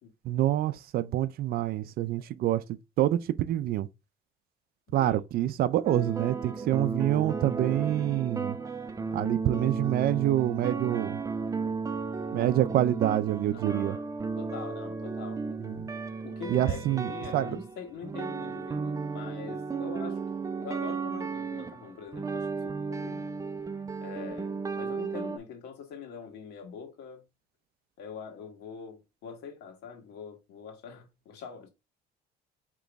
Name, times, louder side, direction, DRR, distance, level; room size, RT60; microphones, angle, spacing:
voice 1, 0.2-2.6 3.0-3.9 4.9-8.6 9.1-11.2 12.3-14.0 15.6-15.8 16.5-17.5, right 13 dB, 65° right, 0.4 m, -27 dB
voice 2, 4.9-5.2 6.7-6.9 8.4-8.5 13.5-14.1 14.4-15.4 16.2-20.2 20.6-23.3 24.0-27.2 28.0-31.7, left 6 dB, 75° left, 1.5 m, -44 dB
sound 1, 5.8-25.4, right 4 dB, 20° right, 0.6 m, -34 dB
5.1 x 3.0 x 3.4 m
cardioid pair, 110°, 17 cm